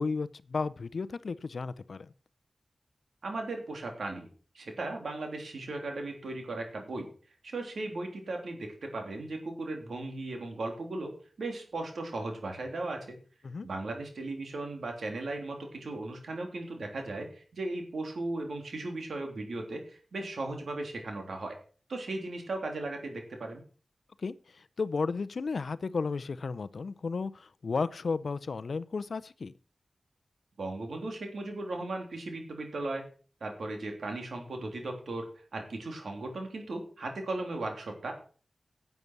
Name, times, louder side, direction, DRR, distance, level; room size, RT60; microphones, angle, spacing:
voice 1, 0.0-2.1 13.4-13.7 24.2-29.5, left 4 dB, 70° left, 15 dB, 0.6 m, -33 dB
voice 2, 3.2-4.3 4.5-7.1 7.4-11.1 11.4-13.1 13.6-21.6 21.9-23.6 30.6-33.0 33.4-38.1, right 2 dB, 80° right, 4 dB, 3.3 m, -37 dB
11.0 x 8.2 x 6.1 m, 0.40 s
cardioid pair, 60°, 0 cm